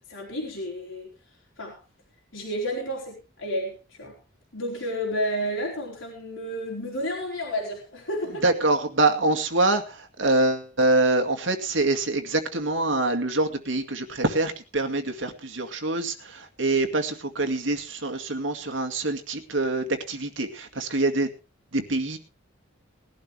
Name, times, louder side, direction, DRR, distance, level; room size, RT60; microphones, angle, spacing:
voice 1, 0.1-1.1 1.6-1.8 2.3-4.2 4.5-8.4, equal, 90° left, -2 dB, 4.1 m, -31 dB
voice 2, 8.4-21.3 21.7-22.2, right 2 dB, 75° right, 6 dB, 2.2 m, -25 dB
19.5 x 12.0 x 3.4 m, 0.32 s
head